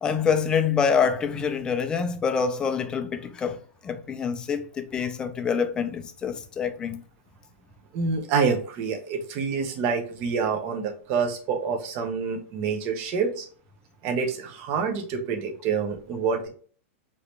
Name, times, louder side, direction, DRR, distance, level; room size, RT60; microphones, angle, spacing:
voice 1, 0.0-7.0, left 6 dB, 10° left, 0.4 m, -26 dB
voice 2, 7.9-13.5 14.0-16.5, right 5 dB, 30° right, 0.9 m, -27 dB
5.2 x 2.9 x 3.1 m
supercardioid pair, 170°, 8 cm